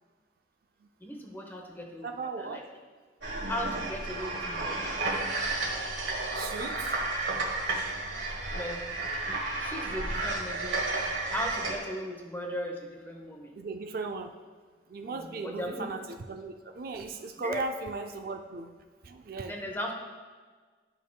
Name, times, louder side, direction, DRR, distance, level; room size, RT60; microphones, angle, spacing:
voice 1, 1.0-2.6 3.5-5.1 8.5-8.8 9.3-10.9 11.3-13.5 15.0-15.9 17.4-17.6 19.5-19.9, left 1 dB, 10° left, 1 dB, 0.8 m, -37 dB
voice 2, 2.0-2.7 6.3-6.9 13.5-14.3 14.9-18.7 19.0-19.6, right 3 dB, 55° right, 5 dB, 0.4 m, -37 dB
sound 1, 3.2-11.8, right 2 dB, 80° right, 1.4 m, -32 dB
13.0 x 5.4 x 2.3 m, 1.5 s
head